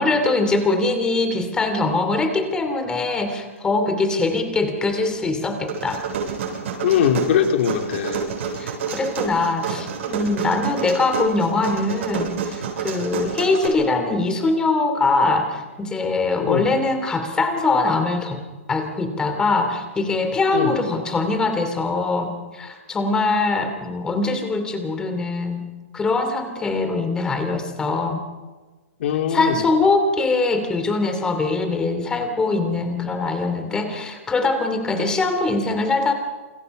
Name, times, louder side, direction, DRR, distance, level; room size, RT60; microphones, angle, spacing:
voice 1, 0.0-6.0 8.6-18.4 18.7-25.6 25.9-28.2 29.3-36.1, left 3 dB, 10° left, 7 dB, 2.8 m, -22 dB
sound 1, 5.7-13.7, right 6 dB, 65° right, 8.0 m, -28 dB
voice 2, 6.8-8.2 16.4-16.7 20.5-20.8 29.0-29.6, left 8 dB, 55° left, 5 dB, 3.1 m, -21 dB
28.5 x 25.5 x 5.5 m, 1.3 s
hypercardioid pair, 160°, 7 cm